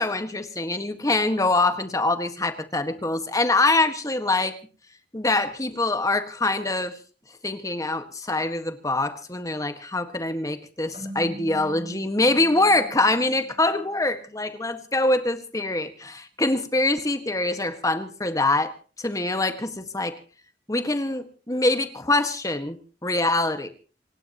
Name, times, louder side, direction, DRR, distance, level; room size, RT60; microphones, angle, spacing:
voice 1, 0.0-4.5 5.1-7.0 7.4-18.7 19.0-20.1 20.7-23.7, left 2 dB, 20° left, 8 dB, 1.6 m, -24 dB
sound 1, 10.9-14.1, right 1 dB, 30° right, 5.5 m, -41 dB
27.5 x 17.0 x 3.0 m, 0.37 s
head